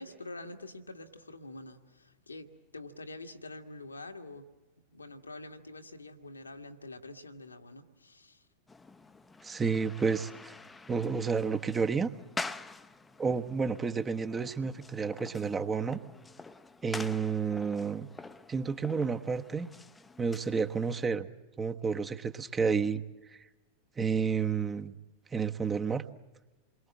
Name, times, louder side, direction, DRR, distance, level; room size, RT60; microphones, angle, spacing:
voice 1, 0.0-4.5 4.9-8.4, left 2 dB, 80° left, 6 dB, 1.8 m, -46 dB
sound 1, 8.7-21.1, left 3 dB, 10° left, 0.9 m, -46 dB
voice 2, 9.4-10.5 10.9-12.1 13.2-16.0 16.8-18.1 18.5-19.7 20.2-21.3 21.6-23.0 23.3-23.4 24.0-24.9 25.3-26.0, right 5 dB, 15° right, 8 dB, 1.2 m, -30 dB
28.5 x 23.0 x 7.6 m, 1.2 s
figure-of-eight pair, 90°, 0 cm